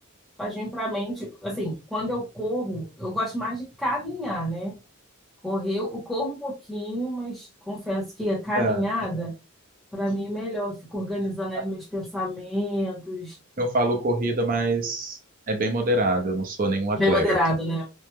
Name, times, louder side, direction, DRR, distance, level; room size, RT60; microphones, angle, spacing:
voice 1, 0.4-4.7 5.4-9.3 9.9-13.4 16.9-17.9, equal, ahead, -4 dB, 0.9 m, -28 dB
voice 2, 13.6-15.2 15.5-17.4, right 1 dB, 40° right, 5 dB, 0.5 m, -24 dB
3.0 x 2.1 x 2.2 m, 0.27 s
head